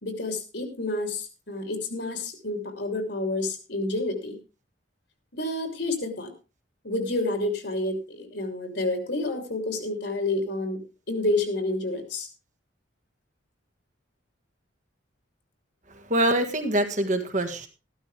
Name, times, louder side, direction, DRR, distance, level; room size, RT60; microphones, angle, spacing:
voice 1, 0.0-4.4 5.3-6.3 6.8-12.3, left 2 dB, 60° left, 6 dB, 3.2 m, -29 dB
voice 2, 15.9-17.7, right 1 dB, 40° right, 5 dB, 1.7 m, -25 dB
14.5 x 12.5 x 3.4 m, 0.29 s
head